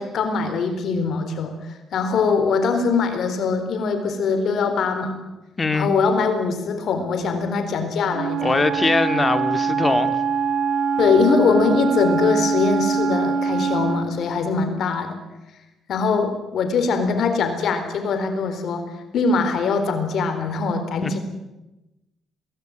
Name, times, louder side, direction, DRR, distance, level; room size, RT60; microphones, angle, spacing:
voice 1, 0.0-1.6 1.9-5.2 5.7-8.5 11.0-15.2 15.9-21.2, left 4 dB, 65° left, 7 dB, 4.0 m, -22 dB
voice 2, 5.6-5.9 8.4-10.2 21.0-21.2, left 3 dB, 25° left, 10 dB, 2.1 m, -22 dB
Wind instrument woodwind instrument, 8.1-14.1, right 5 dB, 80° right, 3.4 m, -23 dB
22.0 x 19.0 x 9.3 m, 0.98 s
cardioid pair, 90°, 0 cm